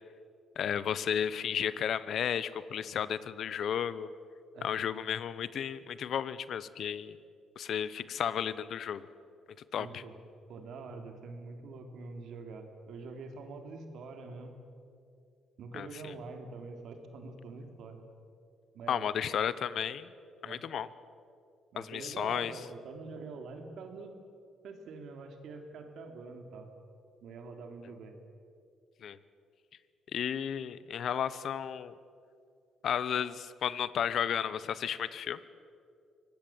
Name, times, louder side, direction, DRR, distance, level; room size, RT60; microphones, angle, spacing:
voice 1, 0.6-4.1 4.6-7.2 7.6-9.1 9.7-10.0 15.7-16.1 18.9-20.1 20.4-20.9 21.8-22.5 29.0-29.2 30.1-32.0 32.8-35.4, left 8 dB, 65° left, 16 dB, 1.0 m, -33 dB
voice 2, 9.8-10.2 10.5-14.6 15.6-18.0 18.7-19.0 20.4-20.6 21.7-24.2 24.6-26.7 27.2-28.1, right 4 dB, 75° right, 5 dB, 3.3 m, -45 dB
24.0 x 18.5 x 8.7 m, 2.4 s
cardioid pair, 90°, 0 cm